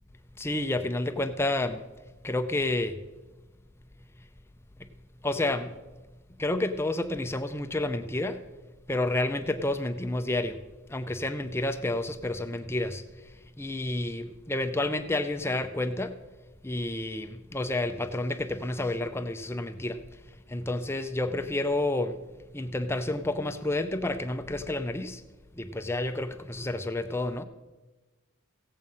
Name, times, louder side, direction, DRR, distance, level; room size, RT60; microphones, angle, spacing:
voice 1, 0.4-1.8 2.2-3.0 5.2-5.7 6.4-8.4 8.9-10.6 10.9-13.0 13.6-16.1 16.6-20.0 20.5-22.2 22.5-25.2 25.6-27.4, left 2 dB, 10° left, 8 dB, 0.5 m, -30 dB
16.5 x 7.8 x 5.5 m, 1.2 s
head